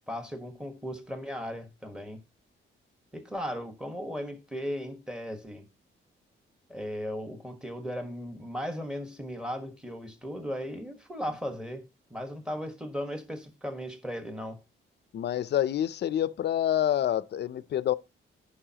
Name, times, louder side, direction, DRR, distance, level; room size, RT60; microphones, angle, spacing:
voice 1, 0.1-2.2 3.1-5.7 6.7-14.6, equal, 5° right, 1.3 m, -37 dB
voice 2, 15.1-18.0, left 11 dB, 55° left, 0.5 m, -27 dB
15.0 x 5.4 x 2.9 m
wide cardioid pair, 150°, 21 cm